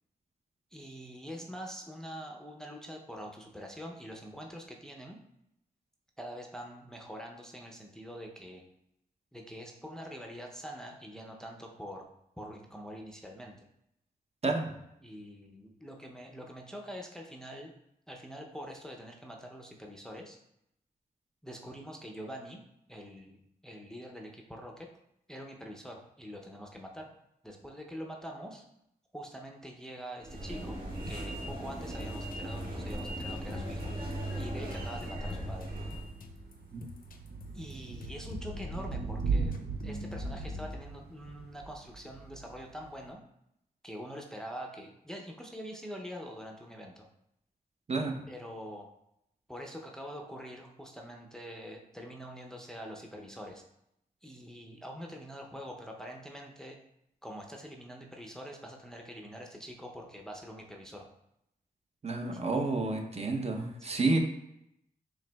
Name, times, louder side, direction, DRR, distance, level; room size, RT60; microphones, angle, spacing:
voice 1, 0.7-5.2 6.2-8.6 9.3-12.1 12.4-13.7 15.0-17.7 18.1-20.4 21.4-22.6 22.9-24.9 25.3-27.1 27.4-28.6 29.1-30.8 31.1-33.9 34.4-35.7 37.5-39.5 39.8-43.2 43.8-47.1 48.3-48.9 49.5-53.6 54.2-56.8 57.2-61.1 62.3-62.4 63.9-64.0, equal, 5° left, 0 dB, 0.5 m, -44 dB
voice 2, 14.4-14.7 36.7-36.8 47.9-48.1 62.0-64.2, right 3 dB, 40° right, 3 dB, 0.6 m, -30 dB
sound 1, 30.2-36.1, right 1 dB, 65° right, 1.3 m, -38 dB
sound 2, 31.8-37.7 38.0-40.8, left 3 dB, 65° left, 0.5 m, -45 dB
Thunder / Rain, 35.0-43.1, right 4 dB, 80° right, 0.4 m, -38 dB
4.8 x 3.3 x 2.2 m, 0.79 s
cardioid pair, 70°, 16 cm